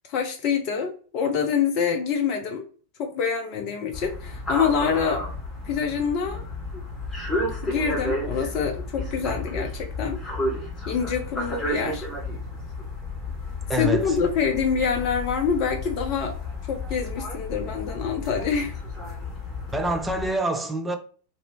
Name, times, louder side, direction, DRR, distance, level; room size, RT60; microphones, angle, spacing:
voice 1, 0.1-2.6 3.0-5.2 5.7-6.4 6.7-6.8 7.6-10.2 10.9-12.1 13.8-16.3 16.7-18.7, left 6 dB, 40° left, 0.5 m, -26 dB
sound 1, 3.9-20.3, left 2 dB, 10° left, 1.6 m, -32 dB
voice 2, 13.7-14.2 19.7-21.0, right 1 dB, 10° right, 0.5 m, -26 dB
3.0 x 2.6 x 2.8 m
figure-of-eight pair, 90°, 0 cm